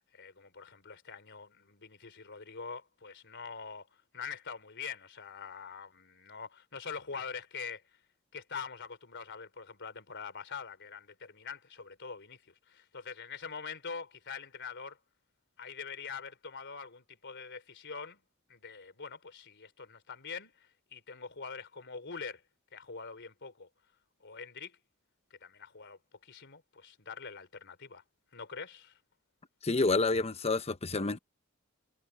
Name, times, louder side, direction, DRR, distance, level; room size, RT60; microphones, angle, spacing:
voice 1, 0.0-3.9 4.1-7.8 8.3-15.0 15.6-18.2 18.5-22.4 22.7-23.7 24.2-24.8 25.4-28.0 28.3-29.0, left 5 dB, 55° left, 3.6 m, -44 dB
voice 2, 29.6-31.2, left 3 dB, 30° left, 0.9 m, -28 dB
head